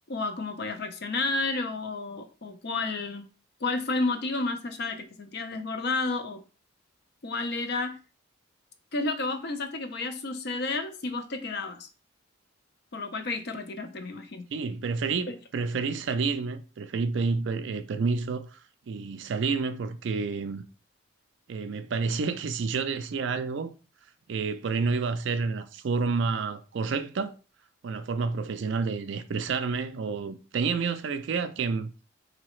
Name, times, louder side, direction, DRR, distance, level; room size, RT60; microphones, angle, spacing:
voice 1, 0.1-3.2 3.6-6.4 7.2-8.0 8.9-11.9 12.9-14.5 15.3-15.4, left 3 dB, 50° left, 0.6 m, -31 dB
voice 2, 14.5-18.6 18.9-20.6 21.5-23.7 24.3-27.3 27.8-31.9, right 4 dB, 60° right, 0.3 m, -29 dB
4.0 x 2.7 x 3.0 m
head